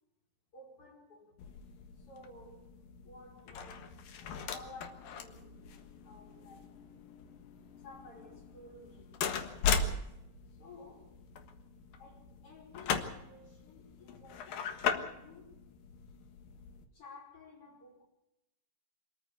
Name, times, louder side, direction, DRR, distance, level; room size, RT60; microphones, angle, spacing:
voice 1, 0.5-1.5 2.0-4.0 4.4-5.8 6.0-6.8 7.7-10.1 10.5-11.2 12.0-15.6 16.9-18.0, left 2 dB, 40° left, 5.7 m, -55 dB
sound 1, 1.4-16.8, left 6 dB, 90° left, 3.3 m, -39 dB
25.5 x 14.0 x 8.3 m
omnidirectional pair, 3.9 m